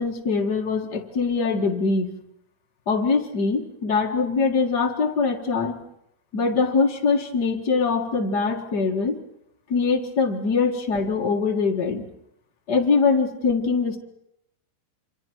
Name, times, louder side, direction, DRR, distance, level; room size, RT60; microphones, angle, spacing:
voice 1, 0.0-2.1 2.9-5.8 6.3-9.2 9.7-12.0 12.7-14.0, left 4 dB, 80° left, 1 dB, 0.9 m, -23 dB
28.5 x 27.0 x 4.6 m, 0.81 s
omnidirectional pair, 5.2 m